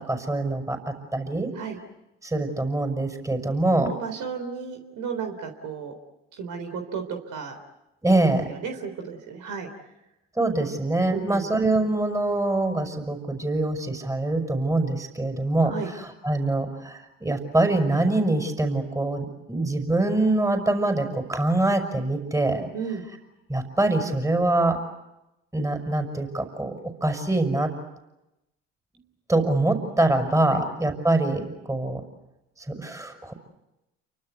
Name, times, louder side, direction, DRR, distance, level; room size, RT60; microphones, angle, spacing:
voice 1, 0.0-1.5 2.2-3.9 8.0-8.5 10.4-22.7 23.5-24.8 25.5-27.7 29.3-32.0 32.7-33.3, right 2 dB, 10° right, 6 dB, 5.9 m, -24 dB
voice 2, 3.8-5.9 6.4-7.0 7.3-7.6 8.5-9.7 11.1-11.5 15.6-15.9 22.7-23.0 30.5-30.6, right 6 dB, 60° right, 5 dB, 3.8 m, -33 dB
29.5 x 24.5 x 8.2 m, 0.92 s
hypercardioid pair, 60°, 35 cm